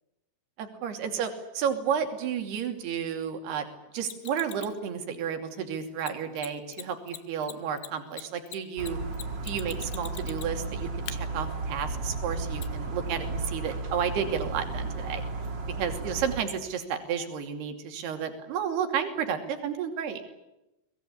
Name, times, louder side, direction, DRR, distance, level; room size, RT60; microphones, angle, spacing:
voice 1, 0.6-3.7 3.9-9.0 9.4-15.2 15.8-20.2, right 7 dB, 60° right, 6 dB, 4.6 m, -32 dB
Mechanisms, 4.0-4.8 6.0-6.1 6.4-6.5 6.7-6.8 7.1-10.7 11.1-11.2 12.6-12.7, left 14 dB, 75° left, 3.2 m, -41 dB
sound 1, 8.8-16.4, right 3 dB, 30° right, 2.6 m, -34 dB
24.0 x 21.0 x 10.0 m, 0.93 s
omnidirectional pair, 5.4 m